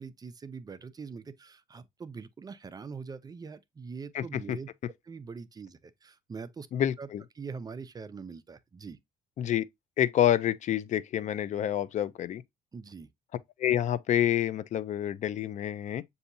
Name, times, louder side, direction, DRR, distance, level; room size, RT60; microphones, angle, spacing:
voice 1, 0.0-4.7 5.0-6.7 7.0-7.1 7.4-9.0 12.7-13.1, right 5 dB, 20° right, 0.4 m, -43 dB
voice 2, 4.1-4.6 6.7-7.2 9.4-9.6 10.0-12.4 13.6-16.0, left 11 dB, 45° left, 0.4 m, -28 dB
6.8 x 2.7 x 2.5 m
cardioid pair, 110°, 17 cm